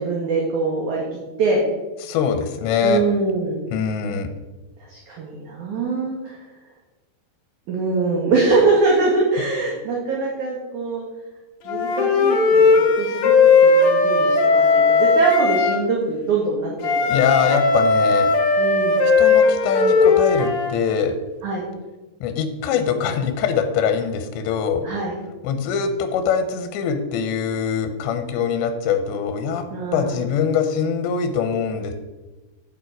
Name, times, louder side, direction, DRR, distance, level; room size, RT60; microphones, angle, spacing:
voice 1, 0.0-1.6 2.8-3.6 4.9-6.4 7.7-11.0 11.7-13.3 13.6-17.2 17.4-17.6 18.6-19.0 21.4-21.6 24.8-25.1 29.7-30.2, right 3 dB, 60° right, -2 dB, 2.2 m, -23 dB
voice 2, 2.0-3.0 3.7-4.3 17.1-18.3 19.2-21.2 22.2-24.8 25.4-29.7 29.9-31.9, left 6 dB, 85° left, 7 dB, 3.1 m, -23 dB
Wind instrument woodwind instrument, 11.7-15.8 16.8-20.7, left 4 dB, 60° left, 1.9 m, -17 dB
8.9 x 8.5 x 4.6 m, 1.1 s
omnidirectional pair, 5.1 m